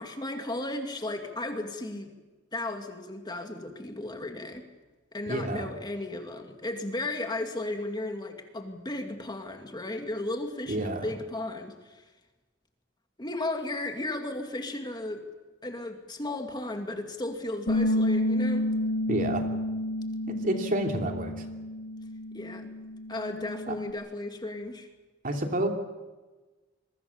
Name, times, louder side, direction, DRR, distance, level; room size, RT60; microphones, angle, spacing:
voice 1, 0.0-2.1 2.5-4.6 5.1-12.0 13.2-15.2 15.6-18.7 22.3-22.7 23.1-24.9, left 2 dB, 25° left, 4 dB, 2.4 m, -35 dB
voice 2, 5.3-5.7 10.7-11.1 19.1-19.4 20.3-21.3 23.7-23.8 25.2-25.7, right 1 dB, 45° right, 3 dB, 3.0 m, -29 dB
Bass guitar, 17.7-23.9, left 1 dB, 80° left, 3.2 m, -30 dB
26.5 x 23.0 x 7.2 m, 1.2 s
head